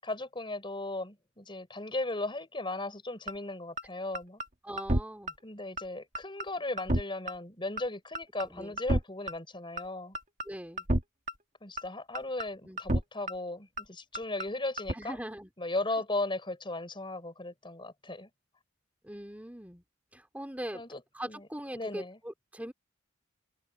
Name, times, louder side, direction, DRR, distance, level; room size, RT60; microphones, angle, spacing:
voice 1, 0.0-4.4 5.4-10.2 11.6-15.2 15.6-18.3 20.7-21.5 21.7-22.2, left 2 dB, 25° left, 5.6 m, -36 dB
sound 1, 3.3-3.4 3.8-3.9 4.2-4.5 4.8-5.0 5.3-5.4 5.8-5.9 6.2-6.5 6.8-7.0 7.3-7.4 7.8-7.9 8.2-8.5 8.8-9.0 9.3-9.4 9.8-9.9 10.2-10.5 10.8-11.0 11.3-11.4 11.8-11.9 12.2-12.5 12.8-13.0 13.3-13.4 13.8-13.9 14.2-14.5 14.8-14.9, right 1 dB, 35° right, 2.2 m, -29 dB
voice 2, 4.6-5.3 8.5-8.8 10.5-10.9 12.6-12.8 14.9-15.5 19.0-19.8 20.1-20.8 21.1-22.7, right 1 dB, 5° right, 3.2 m, -41 dB
open air
head